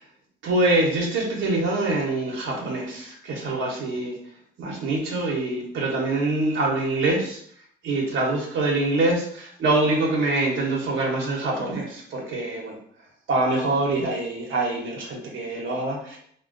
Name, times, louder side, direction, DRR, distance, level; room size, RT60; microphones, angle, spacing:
voice 1, 0.4-4.2 4.6-7.4 7.8-12.8 13.3-16.2, right 2 dB, 75° right, -2 dB, 0.8 m, -25 dB
3.0 x 2.1 x 2.5 m, 0.63 s
cardioid pair, 90°, 20 cm